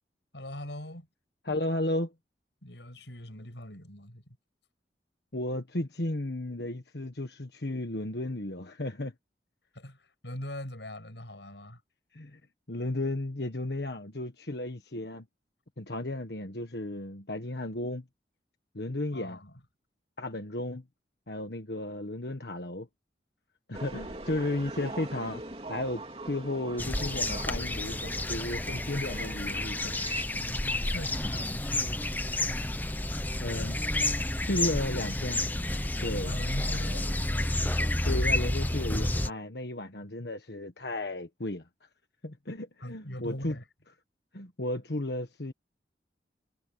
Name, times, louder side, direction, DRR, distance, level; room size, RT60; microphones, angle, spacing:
voice 1, 0.3-1.1 2.6-4.4 9.7-11.8 19.1-19.6 30.3-32.4 36.1-37.4 42.8-43.6, left 1 dB, 85° left, 7.3 m, -42 dB
voice 2, 1.5-2.1 5.3-9.1 12.1-12.4 12.7-15.2 15.8-18.0 18.7-19.4 20.2-20.8 21.3-22.9 23.7-25.4 25.7-29.9 33.4-33.8 34.4-35.4 36.0-36.3 38.0-41.6 42.2-43.6 44.3-45.5, left 1 dB, 70° left, 1.5 m, -34 dB
sound 1, 23.7-30.2, right 2 dB, 35° right, 2.9 m, -42 dB
sound 2, 26.8-39.3, left 1 dB, 10° left, 0.8 m, -30 dB
head